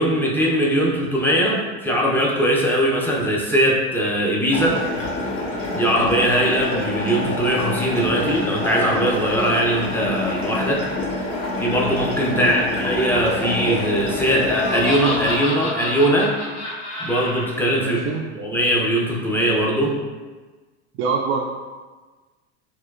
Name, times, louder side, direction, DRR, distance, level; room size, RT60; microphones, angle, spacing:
voice 1, 0.0-4.8 5.7-10.9 11.6-16.3 17.0-18.0 18.3-20.0, equal, 5° left, -3 dB, 0.6 m, -20 dB
sound 1, 4.5-15.4, left 2 dB, 40° left, 1.1 m, -27 dB
Laughter, 14.4-17.5, left 1 dB, 85° left, 0.8 m, -30 dB
voice 2, 17.8-18.2 21.0-21.4, right 5 dB, 40° right, -2 dB, 0.4 m, -25 dB
4.3 x 2.2 x 2.4 m, 1.3 s
hypercardioid pair, 85°, 33 cm